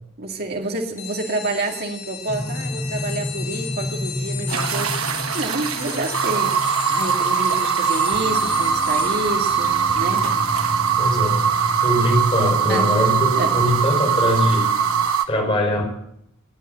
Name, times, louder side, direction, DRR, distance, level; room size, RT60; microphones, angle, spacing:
voice 1, 0.2-4.9 5.3-10.2 12.7-12.9 13.4-13.5, right 2 dB, 50° right, 2 dB, 2.1 m, -28 dB
sound 1, 1.0-13.1, left 9 dB, 80° left, 5.7 m, -37 dB
sound 2, 2.3-15.1, equal, 5° left, 0.7 m, -33 dB
sound 3, 4.5-15.2, right 7 dB, 80° right, 1.2 m, -21 dB
voice 2, 11.0-11.4 11.8-14.7 15.3-15.8, equal, 25° left, 2 dB, 4.8 m, -21 dB
20.0 x 8.9 x 7.9 m, 0.75 s
head